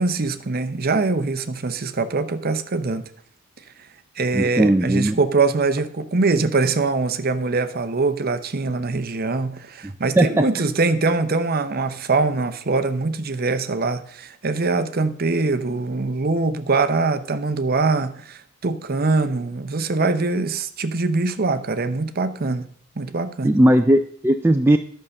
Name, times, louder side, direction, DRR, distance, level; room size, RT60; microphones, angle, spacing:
voice 1, 0.0-3.1 4.2-22.7 23.0-23.6, right 3 dB, 45° right, 10 dB, 0.7 m, -23 dB
voice 2, 4.3-5.2 9.8-10.4 23.4-24.8, right 1 dB, 10° right, 5 dB, 0.3 m, -18 dB
11.0 x 5.6 x 6.5 m, 0.63 s
head